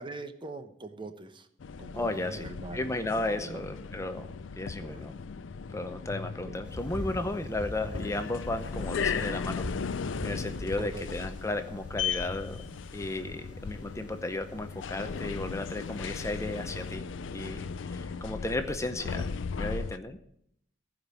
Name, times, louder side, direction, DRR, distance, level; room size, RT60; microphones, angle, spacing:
voice 1, 0.0-1.5 1.8-2.8 3.3-3.7 4.8-5.1 6.4-6.5 10.8-11.3 19.1-19.3, right 2 dB, 25° right, 9 dB, 0.9 m, -42 dB
Elevator quiet with voice communication, 1.6-20.0, left 5 dB, 85° left, 0.5 m, -37 dB
voice 2, 1.9-2.5 2.7-4.3 4.6-5.2 5.7-9.7 10.2-12.6 12.9-19.2 19.6-20.2, left 2 dB, 15° left, 8 dB, 0.6 m, -34 dB
sound 1, 6.6-16.9, equal, 5° right, 4.4 m, -44 dB
14.5 x 5.1 x 9.5 m, 0.73 s
head